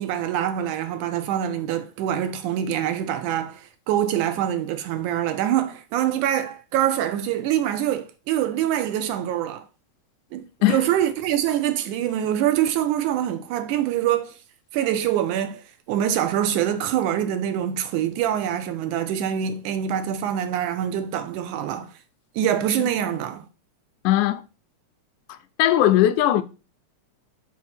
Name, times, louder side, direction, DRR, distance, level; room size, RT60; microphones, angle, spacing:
voice 1, 0.0-9.6 10.3-14.3 14.7-21.9 22.4-23.4, right 10 dB, 85° right, 2.2 m, -25 dB
voice 2, 24.0-24.4 25.3-26.4, left 13 dB, 80° left, 1.9 m, -19 dB
6.3 x 4.3 x 4.2 m
omnidirectional pair, 3.5 m